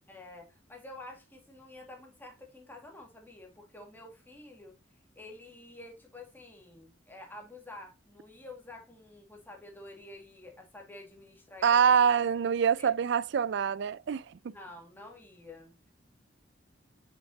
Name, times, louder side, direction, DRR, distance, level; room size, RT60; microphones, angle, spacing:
voice 1, 0.1-4.8 5.2-12.4 12.8-12.9 14.5-15.8, left 2 dB, 10° left, 2.0 m, -49 dB
voice 2, 11.6-14.5, right 7 dB, 70° right, 0.4 m, -25 dB
6.4 x 5.9 x 2.8 m
head